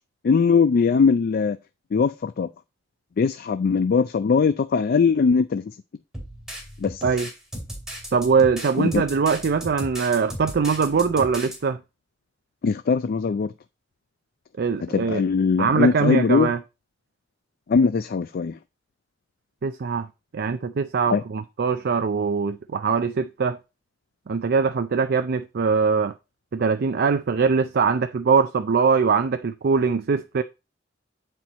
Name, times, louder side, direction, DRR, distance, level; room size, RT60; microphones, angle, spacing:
voice 1, 0.2-1.6 1.9-2.5 3.2-5.6 6.8-7.0 8.8-9.0 12.6-13.5 14.9-16.5 17.7-18.5 21.1-21.2, left 5 dB, 50° left, 0.4 m, -20 dB
sound 1, 6.1-11.6, equal, 5° right, 2.7 m, -36 dB
voice 2, 8.1-11.8 14.6-15.2 15.6-16.6 19.6-20.1 20.3-23.6 24.3-26.1 26.5-30.4, right 5 dB, 55° right, 0.5 m, -22 dB
9.2 x 4.4 x 4.1 m
head